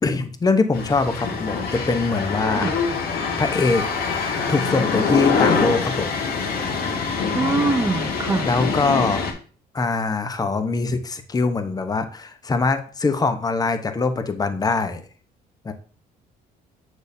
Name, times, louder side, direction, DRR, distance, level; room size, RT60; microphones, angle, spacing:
voice 1, 0.0-2.7 3.4-3.9 4.5-6.1 8.5-9.2 9.7-15.0 15.6-15.7, left 3 dB, 20° left, 9 dB, 0.8 m, -23 dB
sound 1, 0.7-9.3, left 5 dB, 65° left, 1.6 m, -24 dB
voice 2, 7.3-8.5, right 4 dB, 15° right, 5 dB, 0.5 m, -23 dB
6.9 x 6.2 x 2.7 m, 0.42 s
cardioid pair, 110°, 17 cm